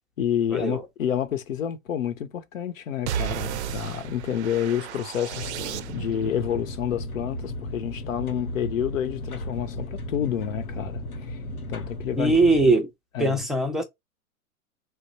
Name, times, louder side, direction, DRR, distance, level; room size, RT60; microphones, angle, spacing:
voice 1, 0.2-11.4 11.7-12.8 13.1-13.4, left 9 dB, 65° left, 1.0 m, -29 dB
sound 1, 3.1-6.3, right 10 dB, 55° right, 0.5 m, -33 dB
sound 2, 5.3-12.7, left 1 dB, 90° left, 0.8 m, -35 dB
voice 2, 12.2-12.9 13.2-13.8, right 2 dB, ahead, 0.5 m, -21 dB
2.9 x 2.2 x 4.0 m
figure-of-eight pair, 105°, 43 cm